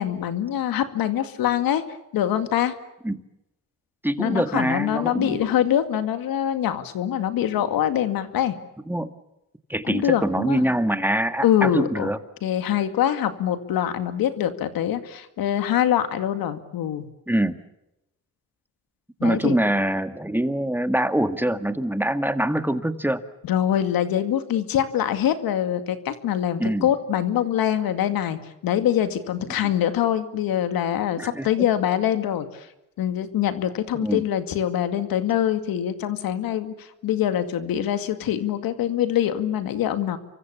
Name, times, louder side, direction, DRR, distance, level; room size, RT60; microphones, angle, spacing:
voice 1, 0.0-1.8 2.1-2.7 4.2-8.6 9.8-10.6 11.4-12.1 12.4-17.1 19.2-19.6 23.4-28.4 28.6-32.5 33.0-40.2, left 10 dB, 85° left, 9 dB, 2.3 m, -24 dB
voice 2, 4.0-5.4 8.9-9.1 9.7-12.2 17.3-17.6 19.2-23.2 26.6-26.9 29.6-29.7 31.2-31.5 33.9-34.2, right 1 dB, 5° right, 9 dB, 1.9 m, -24 dB
28.5 x 24.0 x 7.0 m, 0.89 s
cardioid pair, 80°, 35 cm